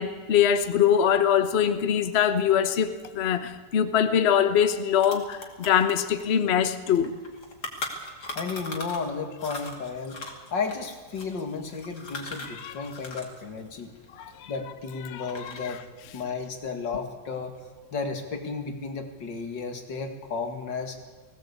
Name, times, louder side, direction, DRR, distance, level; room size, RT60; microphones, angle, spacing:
voice 1, 0.0-7.1 12.4-12.8 14.2-14.5 15.0-15.8, left 8 dB, 45° left, 10 dB, 1.1 m, -23 dB
sound 1, 4.4-4.5 4.7-9.1 9.4-13.4 13.7-14.8 15.2-15.8, left 2 dB, 65° left, 3.1 m, -39 dB
voice 2, 8.3-10.2 10.5-13.9 14.5-15.8 16.1-17.6 17.9-21.0, left 4 dB, 80° left, 5 dB, 2.7 m, -33 dB
19.5 x 17.0 x 8.3 m, 1.3 s
omnidirectional pair, 1.9 m